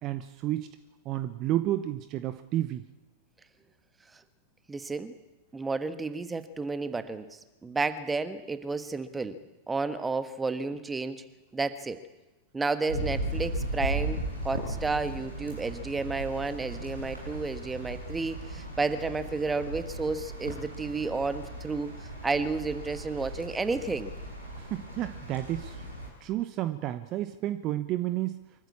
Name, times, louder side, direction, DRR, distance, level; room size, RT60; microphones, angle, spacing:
voice 1, 0.0-0.7 1.0-2.8 24.6-25.7 26.2-28.5, right 14 dB, 35° right, 11 dB, 0.9 m, -31 dB
voice 2, 4.7-5.1 5.5-9.4 9.7-11.2 11.5-12.0 12.5-24.1, right 3 dB, 10° right, 11 dB, 1.4 m, -31 dB
sound 1, 12.9-26.1, right 1 dB, 85° right, 7.5 m, -37 dB
24.5 x 14.5 x 8.6 m, 1.1 s
figure-of-eight pair, 90°, 0 cm